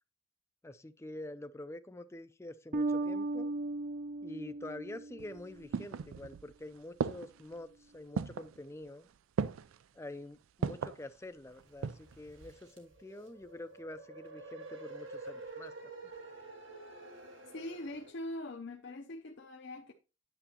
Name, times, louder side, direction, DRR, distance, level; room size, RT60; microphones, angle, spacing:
voice 1, 0.6-3.5 4.2-9.1 9.9-15.9, left 1 dB, 15° left, 0.4 m, -47 dB
Bass guitar, 2.7-5.7, right 2 dB, 40° right, 0.5 m, -36 dB
sound 1, 5.2-6.5 7.0-7.5 8.2-8.6 9.4-9.8 10.6-11.0 11.6-12.2 12.5-12.6, right 6 dB, 90° right, 0.4 m, -36 dB
sound 2, 11.5-18.1, right 2 dB, 75° right, 1.5 m, -49 dB
voice 2, 17.5-19.9, left 1 dB, 60° left, 0.6 m, -42 dB
9.0 x 7.0 x 2.8 m
head